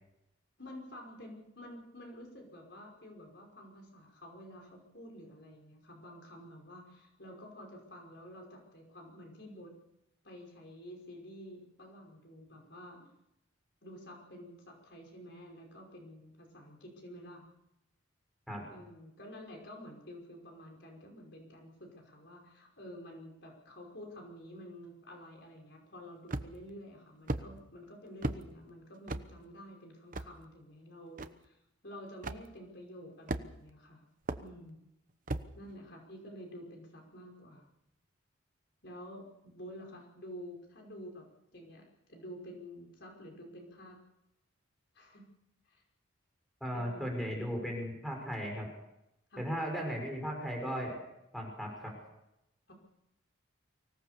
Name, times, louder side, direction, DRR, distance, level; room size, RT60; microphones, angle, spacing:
voice 1, 0.6-9.7 10.2-13.1 13.8-17.4 18.7-34.0 34.4-34.8 35.5-37.7 38.8-41.3 41.5-44.0 44.9-45.3 45.7-45.8 46.7-47.6 49.3-49.5 52.7-52.8, equal, 55° left, 1 dB, 5.4 m, -50 dB
sound 1, 26.3-26.7 27.3-27.5 28.2-28.4 29.1-29.3 30.1-30.3 31.2-31.3 32.2-32.4 33.3-33.7 34.3-34.4 35.3-35.5, right 2 dB, 40° right, 1.0 m, -35 dB
voice 2, 46.6-48.7 49.4-51.0 51.3-52.0, equal, ahead, 1 dB, 6.2 m, -36 dB
24.5 x 17.5 x 6.9 m, 0.85 s
head